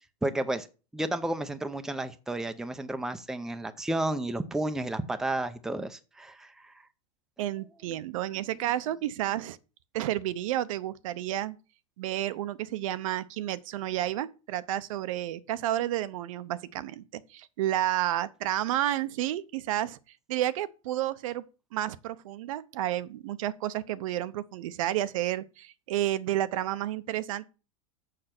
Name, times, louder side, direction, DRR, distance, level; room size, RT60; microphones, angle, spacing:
voice 1, 0.2-0.7 0.9-6.7, right 1 dB, 5° right, 0.6 m, -32 dB
voice 2, 7.4-9.6 9.9-11.6 12.0-17.0 17.3-20.0 20.3-21.4 21.7-27.4, right 13 dB, 70° right, 0.7 m, -31 dB
6.6 x 6.5 x 5.9 m
supercardioid pair, 140°, 18 cm